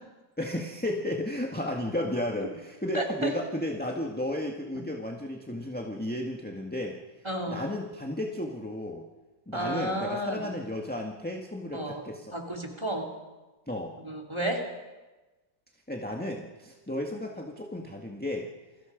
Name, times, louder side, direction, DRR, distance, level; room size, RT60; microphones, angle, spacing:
voice 1, 0.4-7.0 7.5-9.0 9.5-12.3 13.7-13.9 15.9-18.5, left 1 dB, 5° left, 1 dB, 1.6 m, -33 dB
voice 2, 2.9-3.3 7.2-7.6 9.5-10.6 11.7-13.1 14.0-14.6, right 1 dB, 15° right, 0 dB, 3.3 m, -32 dB
29.5 x 22.0 x 5.2 m, 1.2 s
omnidirectional pair, 2.1 m